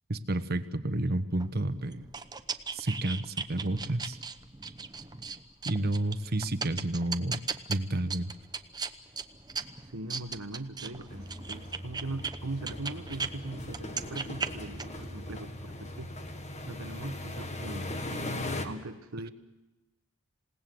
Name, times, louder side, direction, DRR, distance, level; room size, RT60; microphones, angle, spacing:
voice 1, 0.1-2.1 2.7-4.2 5.6-7.4 7.7-8.3, right 1 dB, 45° right, 11 dB, 1.2 m, -30 dB
sound 1, 1.4-13.3 13.7-15.0, right 5 dB, 20° right, 0.9 m, -38 dB
voice 2, 9.9-16.1 16.7-19.3, right 2 dB, 75° right, 10 dB, 1.3 m, -40 dB
sound 2, 11.1-18.7, left 1 dB, 30° left, 1.8 m, -39 dB
27.5 x 18.5 x 7.9 m, 1.1 s
head